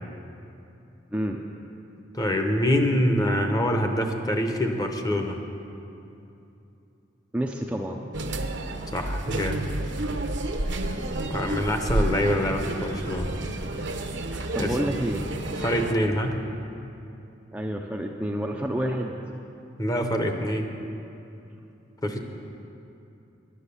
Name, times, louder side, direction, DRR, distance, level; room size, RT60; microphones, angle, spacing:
voice 1, 1.1-1.4 7.3-8.0 14.5-15.3 17.5-19.2, equal, 5° right, 1 dB, 0.5 m, -29 dB
voice 2, 2.1-5.4 8.9-9.6 11.3-13.3 14.6-14.7 15.6-16.4 19.8-20.7 22.0-22.2, equal, 20° left, 4 dB, 0.9 m, -25 dB
sound 1, 8.1-15.9, right 1 dB, 65° right, 0.8 m, -30 dB
10.5 x 9.8 x 6.9 m, 2.8 s
head